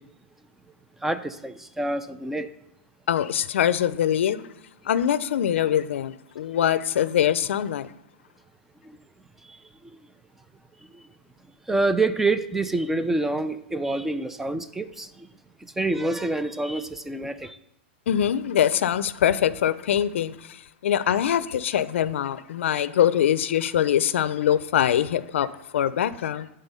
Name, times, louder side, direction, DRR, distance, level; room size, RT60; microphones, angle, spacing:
voice 1, 1.0-2.5 8.9-9.0 9.5-9.6 11.7-15.3 15.6-17.6, right 2 dB, 5° right, 0.3 m, -27 dB
voice 2, 3.1-4.5 4.9-7.9 18.1-26.5, left 10 dB, 80° left, 0.5 m, -23 dB
9.7 x 3.8 x 5.4 m
supercardioid pair, 150°, 7 cm